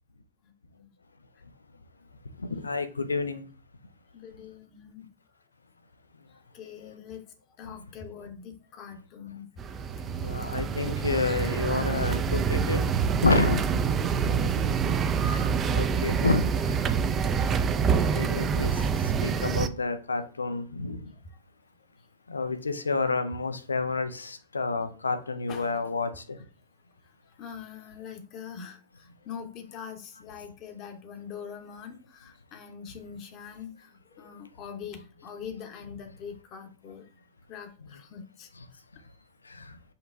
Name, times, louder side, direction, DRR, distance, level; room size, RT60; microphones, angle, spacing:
voice 1, 0.4-0.9 4.1-5.1 6.5-7.2 7.6-9.5 10.0-10.1 14.4-15.1 25.5-25.8 27.4-37.0 37.5-38.5, left 7 dB, 40° left, 5 dB, 0.9 m, -43 dB
voice 2, 2.5-3.4 10.2-12.8 13.2-13.6 15.3-15.5 15.7-16.4 18.1-18.7 19.2-21.0 22.3-26.1, left 3 dB, 75° left, 9 dB, 0.6 m, -28 dB
sound 1, 9.6-19.7, right 6 dB, 25° right, 0.4 m, -26 dB
5.4 x 2.3 x 3.7 m, 0.39 s
figure-of-eight pair, 90°, 0 cm